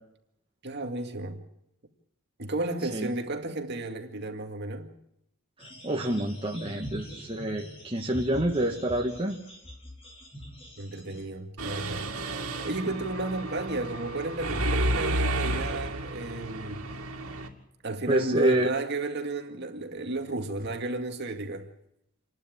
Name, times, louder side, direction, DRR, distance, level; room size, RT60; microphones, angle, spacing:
voice 1, 0.6-1.4 2.4-4.9 10.8-12.1 12.6-16.8 17.8-21.7, right 2 dB, 50° right, 2.1 m, -33 dB
sound 1, 5.6-11.3, equal, 25° left, 5.0 m, -44 dB
voice 2, 5.6-9.4 18.1-18.7, right 1 dB, 25° right, 1.6 m, -27 dB
Mechanisms, 11.6-17.5, right 1 dB, 85° right, 2.5 m, -31 dB
27.5 x 12.0 x 8.7 m
head